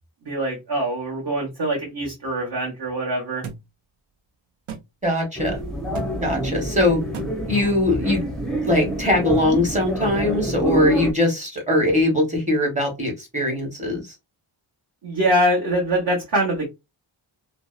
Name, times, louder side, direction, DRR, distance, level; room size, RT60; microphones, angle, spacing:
voice 1, 0.2-3.5 15.0-16.7, right 1 dB, 55° right, 1.1 m, -23 dB
sound 1, 3.4-3.6 4.7-4.8 5.9-6.1 7.1-7.3, right 6 dB, 90° right, 0.6 m, -34 dB
voice 2, 5.0-5.6 6.2-7.0 7.5-8.2 8.6-14.0, left 1 dB, 15° right, 1.1 m, -21 dB
sound 2, 5.4-11.1, right 1 dB, ahead, 0.5 m, -27 dB
2.6 x 2.0 x 2.3 m
wide cardioid pair, 120°, 48 cm